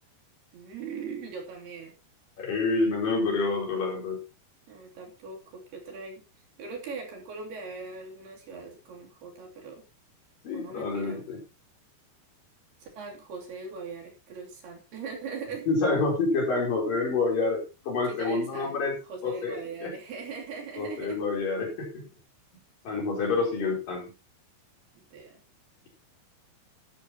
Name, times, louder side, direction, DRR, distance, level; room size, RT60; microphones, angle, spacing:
voice 1, 0.5-1.9 4.7-6.2 6.6-9.8 10.5-11.2 12.8-15.7 18.1-18.7 19.1-21.2 23.2-23.5 25.0-25.4, right 4 dB, 65° right, 1 dB, 4.8 m, -40 dB
voice 2, 2.4-4.2 10.4-11.4 15.7-19.0 19.2-19.9 20.8-22.1 22.9-24.1, left 3 dB, 50° left, 0 dB, 5.5 m, -28 dB
14.0 x 12.0 x 3.0 m, 0.29 s
omnidirectional pair, 5.1 m